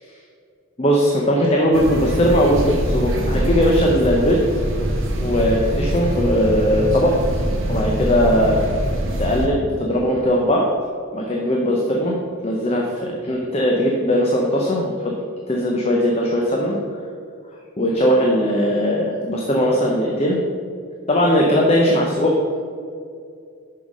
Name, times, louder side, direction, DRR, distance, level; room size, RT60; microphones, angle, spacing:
voice 1, 0.8-4.6 5.2-7.1 7.7-8.6 9.2-10.7 11.1-15.1 15.5-16.8 17.8-20.4 21.1-22.3, equal, 30° left, -1 dB, 0.6 m, -19 dB
sound 1, 1.7-9.5, right 1 dB, 60° right, 1.2 m, -23 dB
6.2 x 5.7 x 5.2 m, 2.3 s
head